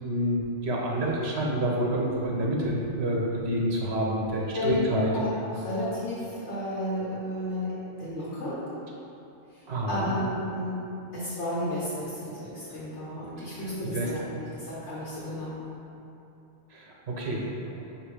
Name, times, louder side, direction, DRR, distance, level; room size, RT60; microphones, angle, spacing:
voice 1, 0.0-5.1 9.7-10.1 13.4-13.5 13.9-14.1 14.5-14.6 16.7-17.5, right 1 dB, 65° right, -2 dB, 1.2 m, -28 dB
voice 2, 4.5-7.7 8.0-8.6 9.5-10.7 11.1-14.2 14.6-15.6, left 1 dB, 75° left, -9 dB, 1.6 m, -32 dB
6.5 x 3.0 x 5.0 m, 2.8 s
omnidirectional pair, 1.2 m